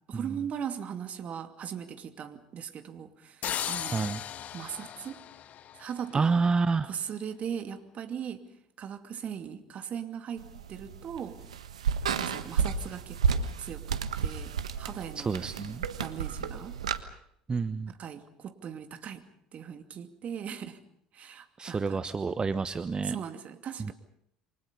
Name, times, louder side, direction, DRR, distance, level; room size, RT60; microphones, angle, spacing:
voice 1, 0.1-4.1 4.5-5.2 5.7-6.3 6.8-8.4 8.8-11.4 12.1-15.3 16.0-16.8 18.0-19.2 19.5-20.8 21.1-22.0 23.0-23.9, right 8 dB, 45° right, 8 dB, 2.6 m, -39 dB
sound 1, 3.4-6.3, left 10 dB, 50° left, 1.2 m, -37 dB
voice 2, 6.1-6.9 15.2-15.8 17.5-17.9 21.6-23.2, right 4 dB, 25° right, 13 dB, 1.0 m, -28 dB
sound 2, 10.4-17.0, right 6 dB, 85° right, 1.4 m, -32 dB
28.5 x 24.5 x 5.3 m, 0.70 s
hypercardioid pair, 65°, 3 cm